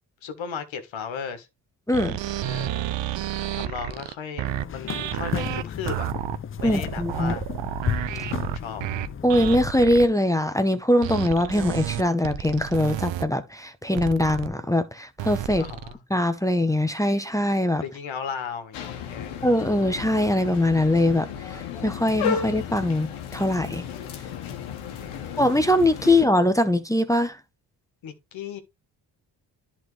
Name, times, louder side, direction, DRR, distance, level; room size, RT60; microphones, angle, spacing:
voice 1, 0.2-1.5 2.4-2.9 3.4-6.1 6.6-7.4 8.1-8.8 15.5-16.0 17.8-19.5 24.8-25.4 26.1-26.2 28.0-28.6, left 6 dB, 70° left, 1.4 m, -36 dB
voice 2, 1.9-2.2 6.6-7.3 9.2-15.6 16.1-17.8 19.4-23.8 25.4-27.4, left 1 dB, 5° left, 0.9 m, -22 dB
sound 1, 1.9-10.1 11.0-13.2 14.0-14.5 15.2-15.9, right 12 dB, 65° right, 0.7 m, -31 dB
sound 2, 4.5-9.7, left 8 dB, 30° left, 0.4 m, -33 dB
sound 3, 18.7-26.3, left 7 dB, 90° left, 1.1 m, -34 dB
10.5 x 4.1 x 3.2 m
supercardioid pair, 55°, 48 cm